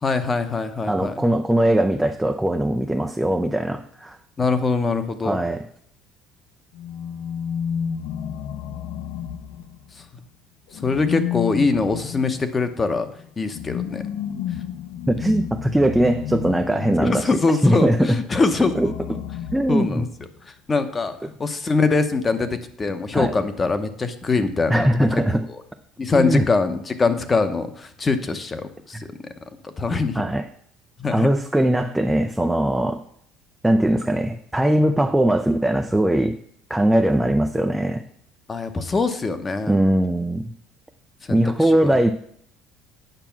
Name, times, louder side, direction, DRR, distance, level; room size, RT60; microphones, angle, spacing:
voice 1, 0.0-1.2 4.4-5.4 10.8-13.1 13.4-14.0 17.0-19.2 19.7-20.1 20.7-24.9 25.1-25.2 25.5-25.6 26.0-29.1 29.8-30.2 31.0-31.3 38.5-39.8 41.3-42.0, left 4 dB, 15° left, 10 dB, 0.8 m, -23 dB
voice 2, 0.9-4.2 5.2-5.6 15.1-18.2 18.8-18.9 19.5-20.0 23.1-23.3 24.7-25.4 26.1-26.5 30.2-30.5 31.1-33.0 33.6-36.4 36.7-38.0 39.7-40.5 41.3-42.1, right 1 dB, 5° right, 6 dB, 0.4 m, -20 dB
sound 1, 6.7-10.1 10.7-17.3 18.3-20.3, left 9 dB, 75° left, 0.7 m, -31 dB
9.1 x 6.0 x 5.8 m, 0.67 s
cardioid pair, 165°, 0 cm